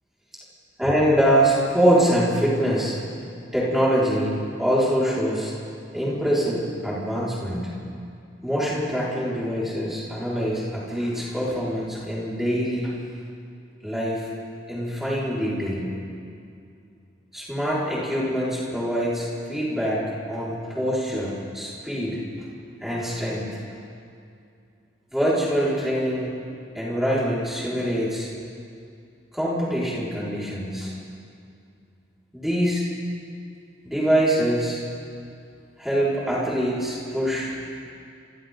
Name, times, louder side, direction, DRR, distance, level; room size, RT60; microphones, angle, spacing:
voice 1, 0.8-3.0 3.5-5.5 5.9-7.7 8.4-12.9 13.8-14.3 14.7-15.9 17.3-22.2 22.6-23.5 25.1-26.3 26.8-28.3 29.3-30.9 32.3-32.8 33.8-34.8 35.8-37.5, equal, ahead, -8 dB, 5.2 m, -24 dB
29.5 x 28.0 x 4.0 m, 2.5 s
head